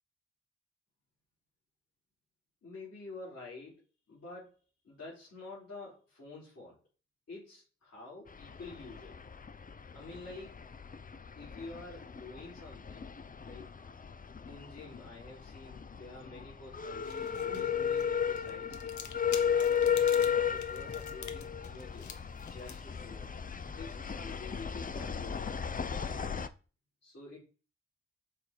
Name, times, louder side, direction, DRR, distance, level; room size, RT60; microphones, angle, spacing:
voice 1, 2.6-3.8 4.1-4.5 4.8-6.8 7.3-9.1 9.9-10.6 11.4-13.1 13.4-13.7 14.5-23.3 23.8-25.4 26.0-26.3 27.0-27.4, left 3 dB, 55° left, -7 dB, 3.9 m, -49 dB
sound 1, 8.3-26.5, left 7 dB, 30° left, 0.6 m, -35 dB
sound 2, 16.8-25.2, left 9 dB, 75° left, 0.7 m, -51 dB
7.2 x 3.3 x 4.4 m, 0.35 s
supercardioid pair, 40°, 29 cm